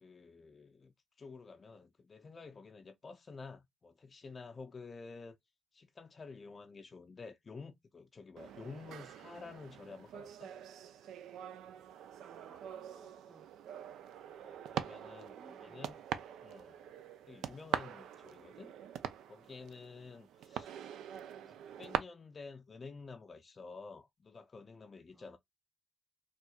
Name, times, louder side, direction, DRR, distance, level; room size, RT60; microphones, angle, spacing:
voice 1, 0.0-5.4 5.7-10.5 14.4-16.0 16.4-16.8 17.3-18.7 19.2-20.8 21.4-25.4, left 4 dB, 35° left, 0.4 m, -51 dB
sound 1, 8.4-22.0, right 10 dB, 80° right, 0.4 m, -43 dB
voice 2, 12.4-13.5 15.3-16.2 25.1-25.4, right 2 dB, 10° right, 1.0 m, -62 dB
4.3 x 2.3 x 2.3 m
cardioid pair, 90°, 0 cm